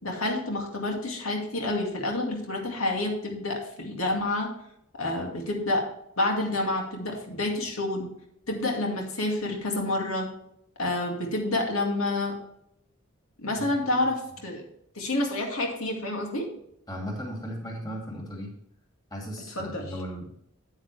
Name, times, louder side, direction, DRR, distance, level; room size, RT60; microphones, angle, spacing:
voice 1, 0.0-4.5 5.0-5.8 6.2-8.1 8.5-10.3 10.8-12.4 13.4-14.6 15.0-16.5 19.6-19.8, left 2 dB, 90° left, 1 dB, 2.2 m, -28 dB
voice 2, 16.9-18.5 19.1-20.3, equal, 20° left, -1 dB, 2.3 m, -36 dB
9.4 x 9.0 x 3.3 m, 0.75 s
head